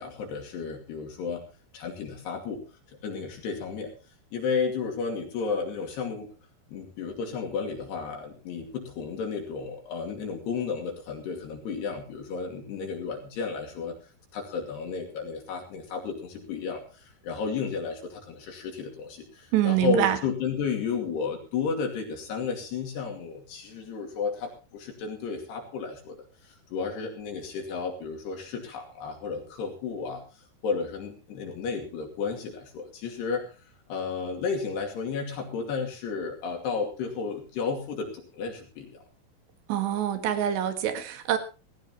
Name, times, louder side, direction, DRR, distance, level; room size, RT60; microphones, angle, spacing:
voice 1, 0.0-1.4 1.7-2.6 2.9-3.9 4.3-6.3 6.7-14.0 14.3-26.2 26.4-30.2 30.6-33.5 33.9-39.0, left 5 dB, 65° left, 1 dB, 4.5 m, -32 dB
voice 2, 19.5-20.2 39.7-41.4, right 11 dB, 75° right, 10 dB, 3.9 m, -25 dB
18.0 x 16.5 x 2.9 m, 0.32 s
omnidirectional pair, 5.1 m